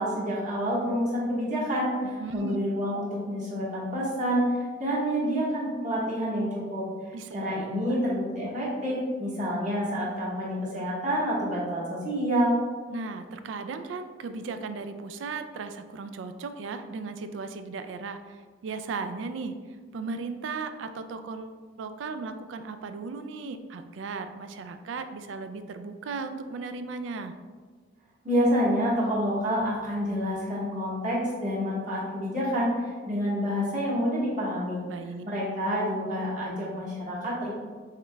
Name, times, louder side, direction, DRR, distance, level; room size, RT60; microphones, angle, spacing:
voice 1, 0.0-1.9 2.3-4.4 4.8-6.8 7.3-12.5 28.2-34.8 35.2-37.5, equal, 45° right, -7 dB, 1.3 m, -28 dB
voice 2, 2.0-2.6 7.1-7.4 12.9-19.6 19.9-27.3 34.9-35.2, right 4 dB, 85° right, 9 dB, 0.3 m, -36 dB
5.7 x 3.1 x 2.2 m, 1.5 s
head